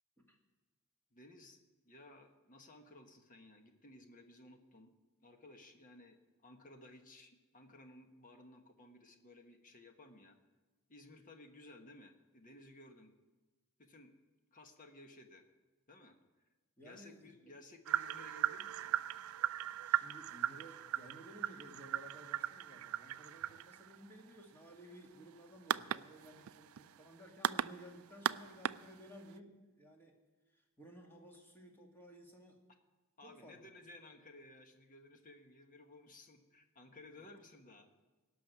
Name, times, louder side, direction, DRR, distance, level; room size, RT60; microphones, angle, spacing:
voice 1, 1.1-4.9 5.2-10.4 10.9-13.1 13.8-14.1 14.5-15.5 15.9-16.2 16.8-18.9 33.2-37.9, left 2 dB, 40° left, 5 dB, 1.3 m, -57 dB
voice 2, 16.8-17.3 19.8-30.1 30.5-32.6 33.2-33.6, equal, 10° left, 0 dB, 2.1 m, -56 dB
sound 1, 17.9-29.3, right 10 dB, 70° right, 0.4 m, -38 dB
17.5 x 6.3 x 9.4 m, 1.2 s
head